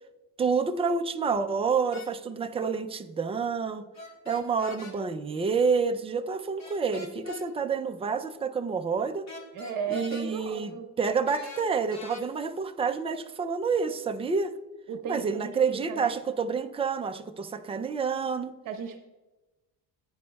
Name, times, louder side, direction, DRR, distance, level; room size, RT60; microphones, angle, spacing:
voice 1, 0.4-3.9 4.3-9.3 9.9-14.5 15.1-18.5, right 5 dB, 15° right, 6 dB, 0.3 m, -28 dB
sound 1, 1.9-2.1 3.9-5.0 6.6-7.5 9.3-10.3 11.3-12.2, left 3 dB, 40° left, 1.7 m, -43 dB
voice 2, 9.5-10.9 14.9-16.2 18.6-19.0, right 6 dB, 50° right, 6 dB, 1.1 m, -35 dB
14.5 x 9.5 x 2.3 m, 1.1 s
cardioid pair, 165°, 43 cm